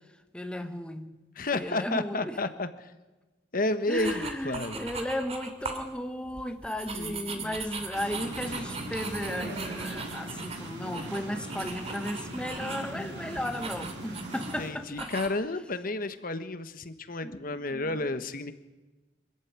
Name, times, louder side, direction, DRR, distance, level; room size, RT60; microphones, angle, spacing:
voice 1, 0.3-1.1 1.5-2.4 3.9-15.1 17.2-18.0, left 1 dB, 5° left, 6 dB, 1.4 m, -35 dB
voice 2, 1.3-2.9 3.5-4.9 6.9-7.6 14.6-18.5, left 2 dB, 50° left, 10 dB, 1.3 m, -32 dB
sound 1, 3.9-5.9 6.3-12.9 13.3-14.6 15.0-15.3, right 4 dB, 35° right, 2.7 m, -39 dB
sound 2, 7.9-14.7, right 1 dB, 70° right, 8.0 m, -39 dB
24.5 x 14.5 x 9.5 m, 1.1 s
head